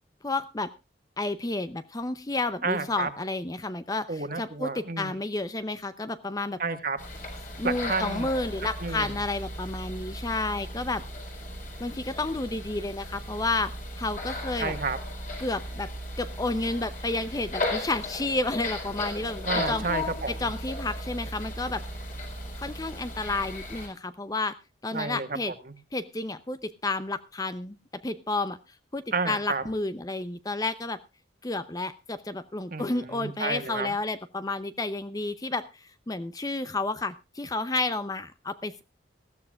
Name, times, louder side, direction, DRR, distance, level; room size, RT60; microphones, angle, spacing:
voice 1, 0.2-0.7 1.2-6.6 7.6-11.0 11.8-13.7 14.0-14.7 15.4-15.9 16.2-19.9 20.3-21.8 22.6-24.6 24.8-25.5 25.9-28.6 28.9-31.0 31.4-38.8, left 2 dB, 20° left, 12 dB, 0.6 m, -31 dB
voice 2, 2.6-3.1 4.1-5.1 6.6-7.0 7.6-8.3 8.8-9.2 14.6-15.0 19.4-20.5 24.9-25.5 29.1-29.6 32.7-33.9, right 3 dB, 50° right, 8 dB, 1.7 m, -31 dB
sound 1, 7.0-23.9, left 1 dB, 45° left, 4.2 m, -36 dB
19.5 x 14.5 x 2.4 m, 0.27 s
head